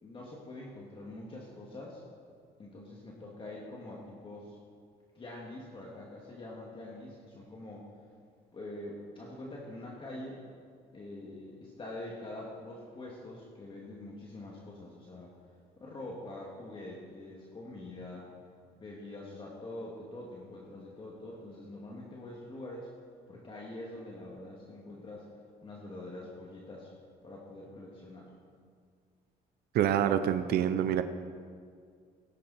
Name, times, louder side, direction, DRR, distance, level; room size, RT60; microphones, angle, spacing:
voice 1, 0.0-2.0 2.6-4.6 5.1-7.9 8.5-10.4 10.9-15.3 15.8-18.3 18.8-22.9 23.3-25.3 25.6-26.9 27.2-28.3, left 1 dB, 30° left, -3 dB, 2.3 m, -45 dB
voice 2, 29.7-31.0, right 10 dB, 70° right, 11 dB, 0.7 m, -26 dB
18.5 x 10.5 x 4.4 m, 2.1 s
cardioid pair, 110°, 17 cm